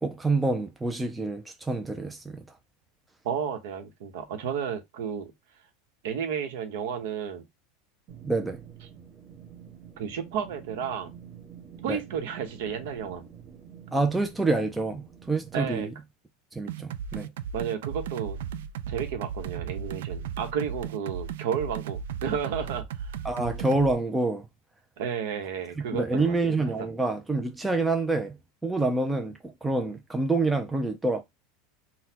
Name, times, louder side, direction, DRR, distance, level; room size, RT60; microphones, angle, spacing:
voice 1, 0.0-2.4 8.2-8.6 11.9-12.0 13.9-15.9 16.5-17.3 23.2-24.5 25.9-28.4 28.6-31.2, right 2 dB, 5° right, 0.3 m, -27 dB
voice 2, 3.2-5.3 6.0-7.4 10.0-11.1 11.8-13.2 15.5-15.9 17.5-18.4 18.9-23.2 25.0-26.4 26.8-26.9, right 7 dB, 65° right, 0.8 m, -32 dB
sound 1, 8.1-15.9, right 8 dB, 35° right, 1.0 m, -48 dB
sound 2, 16.7-23.9, right 8 dB, 90° right, 0.3 m, -35 dB
3.9 x 2.1 x 2.8 m
supercardioid pair, 165°, 0 cm